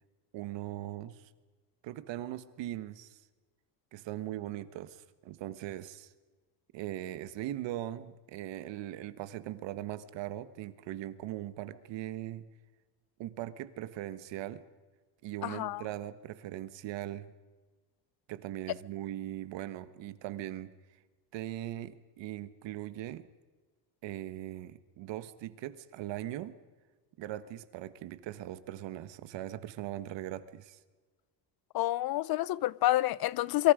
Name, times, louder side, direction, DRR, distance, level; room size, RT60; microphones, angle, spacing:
voice 1, 0.3-1.3 1.8-3.2 3.9-6.1 6.7-12.5 13.2-14.6 15.2-17.3 18.3-20.7 21.3-23.3 24.0-26.5 27.2-30.8, right 13 dB, 75° right, 1.5 m, -40 dB
voice 2, 15.4-15.8 31.7-33.7, left 15 dB, 55° left, 0.6 m, -28 dB
27.5 x 24.0 x 5.1 m
cardioid pair, 160°, 44 cm